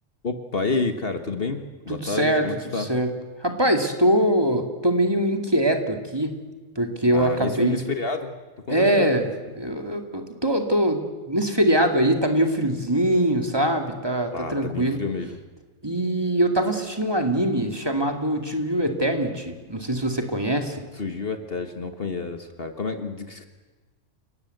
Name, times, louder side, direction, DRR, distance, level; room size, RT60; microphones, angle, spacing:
voice 1, 0.2-2.9 7.1-8.3 8.7-9.1 14.3-15.4 20.9-23.5, left 4 dB, 50° left, 7 dB, 1.6 m, -29 dB
voice 2, 1.9-2.5 2.8-3.1 3.4-6.4 6.8-7.8 8.7-9.3 9.6-15.0 15.8-20.8, right 1 dB, 20° right, 4 dB, 2.4 m, -23 dB
29.5 x 18.0 x 7.9 m, 1.3 s
omnidirectional pair, 1.3 m